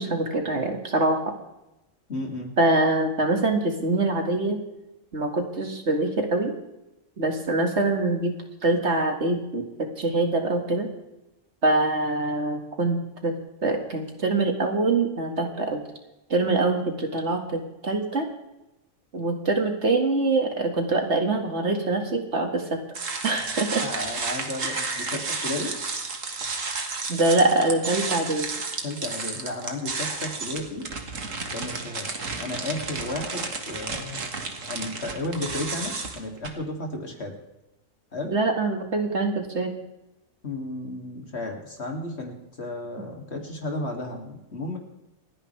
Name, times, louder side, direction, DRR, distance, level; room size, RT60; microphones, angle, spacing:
voice 1, 0.0-1.3 2.6-4.6 5.1-6.5 7.2-8.3 8.6-10.9 11.6-13.3 13.6-15.8 16.3-18.3 19.1-22.8 23.2-23.8 24.6-25.1 27.1-28.5 38.3-39.7, right 2 dB, 60° right, 3 dB, 2.4 m, -24 dB
voice 2, 2.1-2.5 23.8-25.8 28.8-30.9 31.5-32.1 32.4-34.2 34.7-37.4 38.1-38.3 40.4-44.8, left 2 dB, 55° left, 2 dB, 3.0 m, -33 dB
sound 1, 22.9-36.5, right 4 dB, 75° right, 2.1 m, -32 dB
28.5 x 10.0 x 3.4 m, 0.93 s
omnidirectional pair, 1.4 m